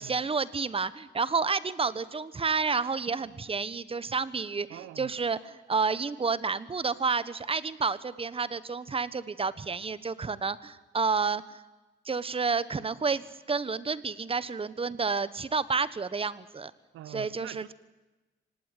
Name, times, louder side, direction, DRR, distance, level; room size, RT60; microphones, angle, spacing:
voice 1, 0.0-11.6 12.0-16.7 17.1-17.6, right 5 dB, 30° right, 1.2 m, -30 dB
voice 2, 4.7-5.1 16.9-17.7, right 13 dB, 85° right, 0.9 m, -44 dB
25.0 x 19.0 x 9.3 m
cardioid pair, 90°, 20 cm